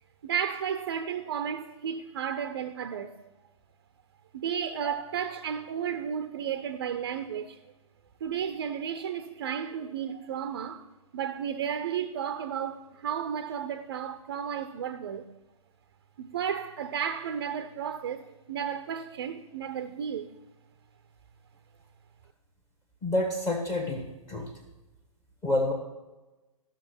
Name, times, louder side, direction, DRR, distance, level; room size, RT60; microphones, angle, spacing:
voice 1, 0.2-3.1 4.3-7.6 8.2-10.9 11.1-15.3 16.2-20.3, right 8 dB, 40° right, 0.6 m, -33 dB
voice 2, 23.0-24.5 25.4-25.7, left 1 dB, 15° left, 1.4 m, -28 dB
13.0 x 6.2 x 6.0 m
figure-of-eight pair, 125°, 17 cm